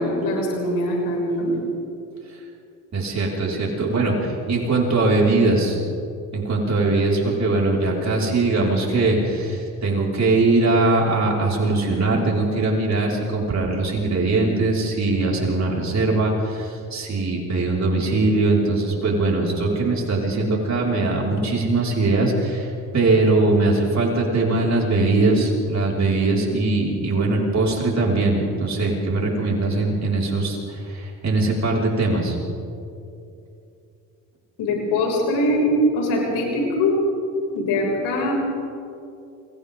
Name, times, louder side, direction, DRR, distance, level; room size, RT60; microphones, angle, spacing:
voice 1, 0.0-1.5 34.6-37.0 37.5-38.3, left 1 dB, 75° left, -1 dB, 6.5 m, -22 dB
voice 2, 2.9-5.8 6.3-32.4, right 2 dB, 40° right, -3 dB, 5.5 m, -21 dB
29.0 x 24.0 x 3.9 m, 2.7 s
supercardioid pair, 65°, 40 cm